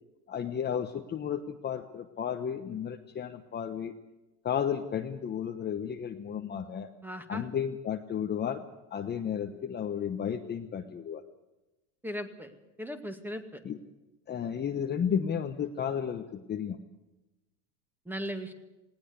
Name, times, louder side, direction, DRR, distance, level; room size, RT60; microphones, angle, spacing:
voice 1, 0.3-3.9 4.4-6.9 7.3-8.7 8.9-11.2 13.6-13.8 14.3-16.8, left 8 dB, 20° left, 5 dB, 1.1 m, -33 dB
voice 2, 7.0-7.5 12.0-12.5 12.8-13.6 18.1-18.5, equal, 5° right, 8 dB, 2.1 m, -37 dB
19.5 x 18.5 x 8.3 m, 1.0 s
supercardioid pair, 125°, 46 cm